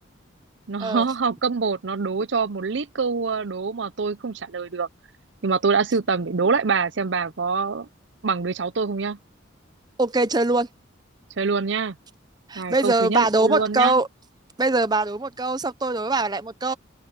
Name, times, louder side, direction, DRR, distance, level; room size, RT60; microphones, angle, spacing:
voice 1, 0.7-4.9 5.4-7.9 8.2-9.2 11.4-11.9 12.6-14.0, right 5 dB, 65° right, 0.7 m, -25 dB
voice 2, 10.0-10.7 12.5-14.1 14.6-16.7, right 2 dB, 20° right, 0.7 m, -22 dB
open air
head